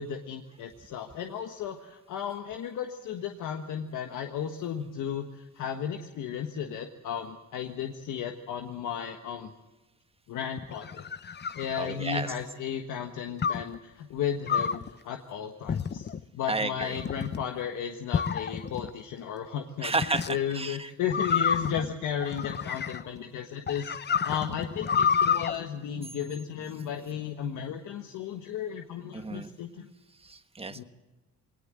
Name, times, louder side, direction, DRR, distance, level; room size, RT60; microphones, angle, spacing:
voice 1, 0.0-9.5 10.3-11.0 11.5-29.9 30.7-30.8, left 8 dB, 85° left, 4 dB, 1.5 m, -34 dB
sound 1, 10.6-12.4 13.4-13.8 14.5-14.9 15.7-16.2 16.8-17.4 18.1-18.9 20.0-20.3 21.1-23.2 23.7-25.5, left 7 dB, 35° left, 0.7 m, -29 dB
voice 2, 11.8-12.3 16.5-17.0 19.8-20.9 29.1-29.5 30.2-30.8, right 3 dB, 20° right, 9 dB, 1.4 m, -32 dB
20.5 x 19.0 x 7.6 m, 1.1 s
cardioid pair, 90°, 30 cm